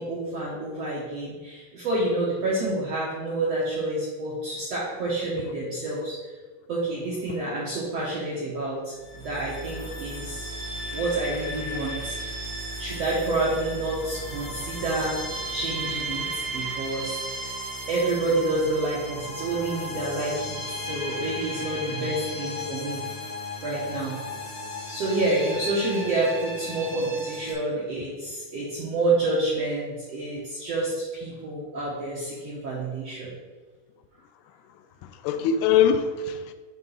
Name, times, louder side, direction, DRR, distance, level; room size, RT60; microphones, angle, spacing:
voice 1, 0.0-6.2 6.7-10.5 10.9-12.2 12.8-15.2 15.5-17.6 17.9-23.0 23.6-24.2 24.9-33.3, right 2 dB, 70° right, -6 dB, 1.6 m, -28 dB
sound 1, 9.0-27.5, equal, 45° left, 1.9 m, -35 dB
voice 2, 34.7-36.5, left 8 dB, 85° left, 9 dB, 2.4 m, -23 dB
7.5 x 3.5 x 5.5 m, 1.4 s
omnidirectional pair, 4.4 m